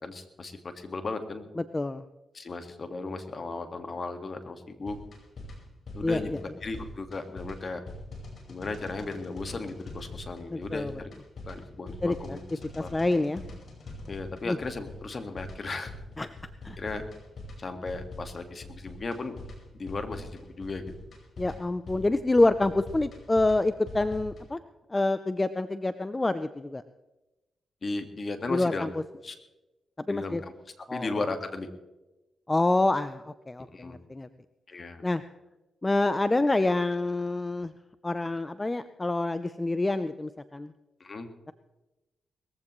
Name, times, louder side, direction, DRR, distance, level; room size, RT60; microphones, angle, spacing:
voice 1, 0.0-1.4 2.3-5.0 5.9-7.8 8.5-11.1 11.5-12.4 12.8-12.9 14.1-15.9 16.8-17.0 17.6-19.3 19.8-20.8 27.8-28.9 29.2-29.4 30.1-30.5 30.9-31.7 33.7-34.0 34.7-35.0 41.0-41.3, left 3 dB, 45° left, 7 dB, 1.8 m, -36 dB
voice 2, 1.6-2.0 6.0-6.4 10.5-10.9 12.0-12.4 12.8-13.4 14.4-14.6 16.2-16.3 16.6-16.8 21.4-24.6 24.9-26.8 28.5-28.9 30.1-30.4 30.9-31.2 32.5-34.3 35.0-35.2 35.8-37.7 38.0-40.7, left 2 dB, 20° left, 12 dB, 0.6 m, -27 dB
sound 1, 4.8-24.5, left 1 dB, 60° left, 4.9 m, -44 dB
20.5 x 15.0 x 3.2 m, 1.0 s
cardioid pair, 70°, 0 cm